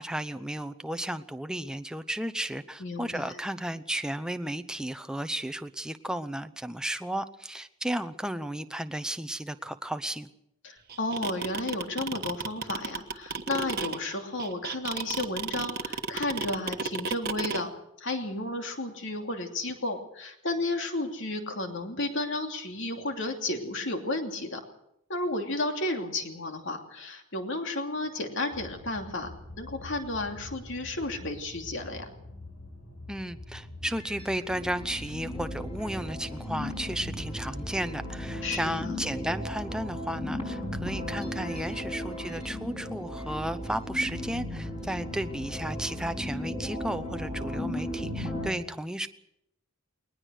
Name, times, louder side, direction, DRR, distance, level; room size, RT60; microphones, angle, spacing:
voice 1, 0.0-10.3 33.1-49.1, right 1 dB, 5° right, 9 dB, 0.8 m, -34 dB
voice 2, 2.8-3.3 10.6-17.7 18.0-24.6 25.1-29.3 29.6-32.1 38.4-38.9, left 2 dB, 60° left, 4 dB, 2.8 m, -32 dB
sound 1, 10.9-17.6, right 5 dB, 45° right, 1.3 m, -32 dB
sound 2, 28.5-37.7, left 2 dB, 80° left, 6.4 m, -46 dB
sound 3, 33.8-48.5, left 1 dB, 25° left, 6.3 m, -36 dB
21.0 x 19.5 x 6.4 m, 0.79 s
head